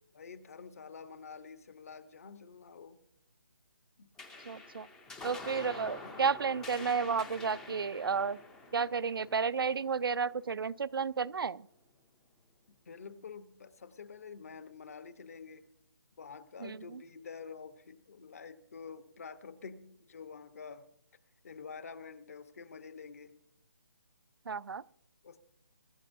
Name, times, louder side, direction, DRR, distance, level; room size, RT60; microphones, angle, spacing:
voice 1, 0.1-3.0 4.0-4.1 5.2-5.4 6.0-6.2 12.7-15.6 16.2-20.9 21.4-23.4 25.2-25.4, left 5 dB, 40° left, 12 dB, 1.0 m, -48 dB
sound 1, 4.2-11.0, left 3 dB, 5° left, 0.5 m, -48 dB
voice 2, 4.5-4.9 5.2-8.4 8.7-11.7 16.6-17.0 24.5-24.8, right 5 dB, 75° right, 17 dB, 0.5 m, -32 dB
24.5 x 12.5 x 2.7 m, 0.73 s
hypercardioid pair, 170°, 12 cm